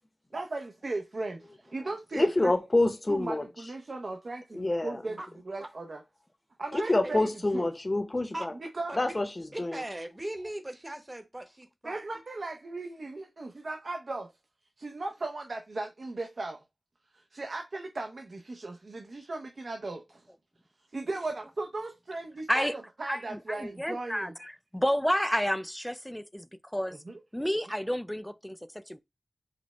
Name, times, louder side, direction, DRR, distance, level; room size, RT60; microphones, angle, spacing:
voice 1, 0.3-2.5 3.1-6.0 6.6-7.3 7.5-7.7 8.5-9.0 11.8-14.3 14.8-16.6 17.1-20.2 20.9-24.3, right 2 dB, 65° right, 0.6 m, -37 dB
voice 2, 2.1-3.4 4.5-5.0 6.7-8.5 9.0-9.8, left 2 dB, 35° left, 0.7 m, -27 dB
voice 3, 6.7-7.1 8.3-8.5 8.9-9.2 9.5-12.0, right 1 dB, 25° right, 0.9 m, -39 dB
voice 4, 23.1-27.0 27.3-29.0, equal, 5° left, 0.3 m, -31 dB
5.1 x 2.1 x 4.1 m
wide cardioid pair, 60°, 0 cm